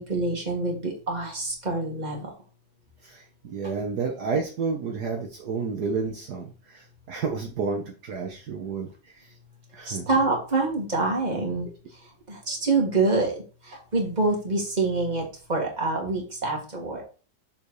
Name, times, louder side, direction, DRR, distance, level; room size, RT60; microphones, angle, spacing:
voice 1, 0.0-2.3 9.8-11.7 12.3-13.4 13.6-17.0, right 3 dB, 25° right, 0 dB, 2.1 m, -26 dB
voice 2, 3.0-8.9 9.2-9.3 9.7-10.1, right 5 dB, 65° right, 1 dB, 1.6 m, -30 dB
6.9 x 4.1 x 4.8 m, 0.36 s
omnidirectional pair, 1.9 m